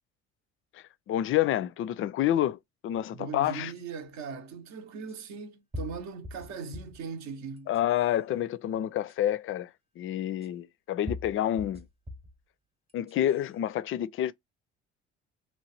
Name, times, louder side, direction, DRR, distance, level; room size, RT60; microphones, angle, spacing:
voice 1, 0.7-3.7 7.7-9.7 10.0-11.9 12.9-14.3, left 12 dB, 40° left, 0.4 m, -28 dB
voice 2, 3.1-7.7, right 5 dB, 60° right, 0.7 m, -39 dB
sound 1, 3.8-3.9 5.1-5.2 5.7-7.0 7.6-8.1 9.1-9.2 10.4-10.5 11.1-12.4 12.9-13.5, left 1 dB, 20° right, 0.8 m, -41 dB
2.9 x 2.2 x 2.8 m
hypercardioid pair, 60°, 31 cm